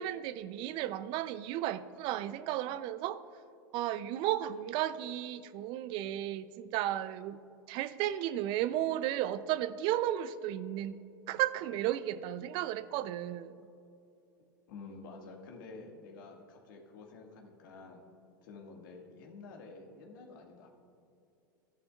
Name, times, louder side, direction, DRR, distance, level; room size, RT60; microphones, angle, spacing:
voice 1, 0.0-3.2 3.7-7.4 7.7-11.0 11.3-13.5, right 12 dB, 50° right, 15 dB, 0.4 m, -34 dB
voice 2, 14.7-18.0 18.4-20.7, left 3 dB, 70° left, 1 dB, 1.7 m, -50 dB
14.0 x 11.0 x 2.3 m, 2.7 s
hypercardioid pair, 95°, 11 cm